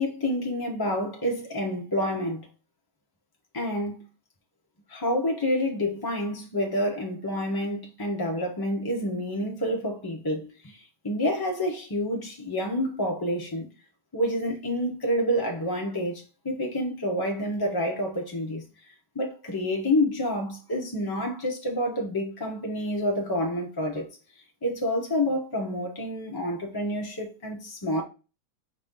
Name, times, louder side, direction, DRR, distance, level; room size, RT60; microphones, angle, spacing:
voice 1, 0.0-2.5 3.5-4.1 4.9-13.7 14.1-24.1 24.6-28.0, left 1 dB, 35° left, 0.4 m, -28 dB
5.2 x 2.7 x 3.6 m
omnidirectional pair, 1.5 m